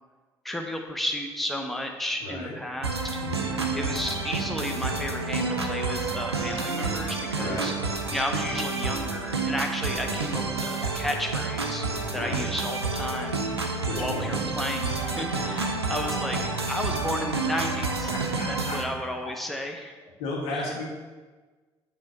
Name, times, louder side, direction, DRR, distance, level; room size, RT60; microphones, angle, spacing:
voice 1, 0.4-3.2 3.7-7.7 8.1-11.8 12.1-13.4 14.0-18.1 18.4-20.0 20.5-20.8, left 1 dB, ahead, 2 dB, 0.8 m, -33 dB
voice 2, 2.2-2.5 3.2-3.7 7.4-7.7 12.1-12.5 13.8-14.4 15.4-15.6 18.1-18.8 19.2-19.3 20.2-20.8, left 2 dB, 65° left, -3 dB, 1.6 m, -34 dB
sound 1, 2.8-18.8, right 3 dB, 90° right, 0.5 m, -29 dB
8.4 x 3.1 x 6.4 m, 1.4 s
figure-of-eight pair, 45°, 13 cm